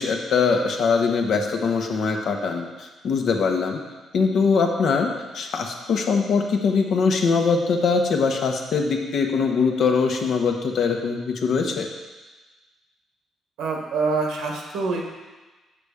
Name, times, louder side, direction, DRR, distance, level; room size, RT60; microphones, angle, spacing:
voice 1, 0.0-3.8 4.1-11.9, left 5 dB, 65° left, 2 dB, 1.1 m, -22 dB
voice 2, 13.6-15.1, right 4 dB, 85° right, 1 dB, 1.4 m, -25 dB
7.0 x 6.0 x 5.0 m, 1.2 s
cardioid pair, 90°, 0 cm